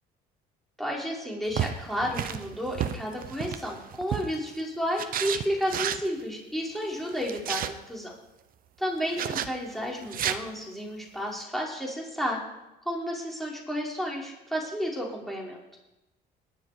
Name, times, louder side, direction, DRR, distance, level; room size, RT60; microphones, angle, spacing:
voice 1, 0.8-8.1 8.8-12.4 12.8-15.6, equal, ahead, -3 dB, 4.8 m, -32 dB
sound 1, 1.5-4.5 5.0-6.1 7.1-7.7 9.1-9.5 10.0-10.4, right 10 dB, 60° right, 1.0 m, -31 dB
19.5 x 11.5 x 5.1 m, 0.96 s
cardioid pair, 110°, 17 cm